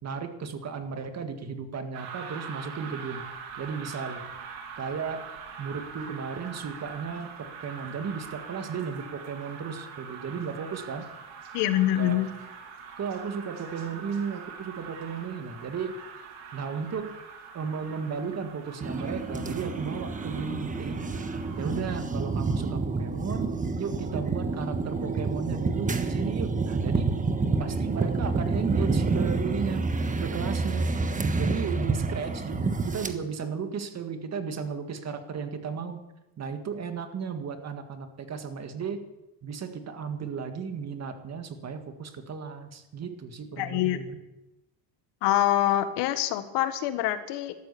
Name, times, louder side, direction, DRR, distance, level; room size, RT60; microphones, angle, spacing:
voice 1, 0.0-3.2 3.6-4.2 4.8-5.3 5.6-11.1 12.0-12.2 13.0-15.9 16.5-17.2 17.5-21.0 21.6-23.5 23.8-27.1 27.6-29.8 30.2-30.9 31.4-36.0 36.4-39.0 39.4-44.2, right 6 dB, 40° right, 7 dB, 1.9 m, -34 dB
sound 1, 1.9-21.7, right 6 dB, 80° right, 3.0 m, -43 dB
voice 2, 11.5-12.3 43.6-44.0 45.2-47.5, left 13 dB, 85° left, 11 dB, 1.4 m, -25 dB
sound 2, 18.8-33.1, right 3 dB, 20° right, 1.3 m, -28 dB
13.0 x 13.0 x 6.9 m, 0.99 s
cardioid pair, 110°, 40 cm